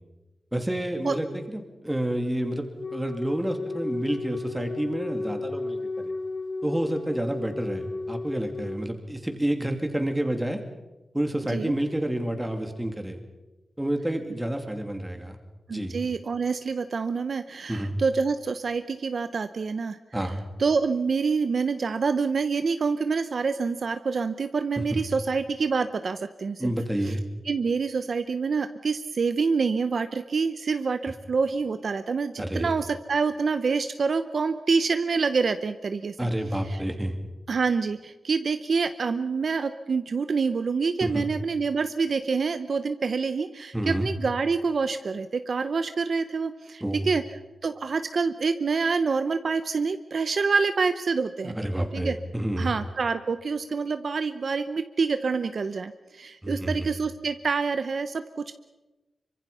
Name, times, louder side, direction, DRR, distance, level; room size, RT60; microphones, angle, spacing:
voice 1, 0.5-5.8 6.6-10.6 11.1-13.2 13.8-15.4 15.7-16.0 17.7-17.9 20.1-20.4 24.8-25.0 26.6-27.2 32.4-32.7 36.2-37.2 41.0-41.3 43.7-44.1 46.8-47.1 51.4-52.7 56.4-56.9, right 1 dB, 10° right, 5 dB, 2.7 m, -29 dB
Wind instrument woodwind instrument, 2.8-8.8, left 3 dB, 70° left, 6.1 m, -33 dB
voice 2, 15.7-20.0 20.6-26.7 27.1-27.2 27.5-36.2 36.7-36.8 37.5-47.2 47.6-51.6 51.9-52.2 52.6-58.5, right 4 dB, 55° right, 10 dB, 0.8 m, -27 dB
26.0 x 24.5 x 5.6 m, 1.1 s
wide cardioid pair, 140°, 0 cm